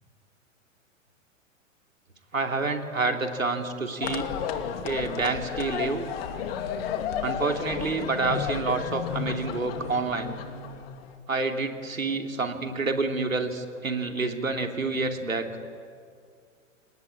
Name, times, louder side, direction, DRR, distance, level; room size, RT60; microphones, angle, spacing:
voice 1, 2.3-4.3 4.8-6.1 7.2-10.4 11.3-15.5, right 3 dB, 85° right, 4 dB, 3.1 m, -28 dB
sound 1, 4.0-11.2, left 8 dB, 50° left, 2.7 m, -33 dB
29.5 x 18.5 x 9.7 m, 2.2 s
figure-of-eight pair, 115°, 39 cm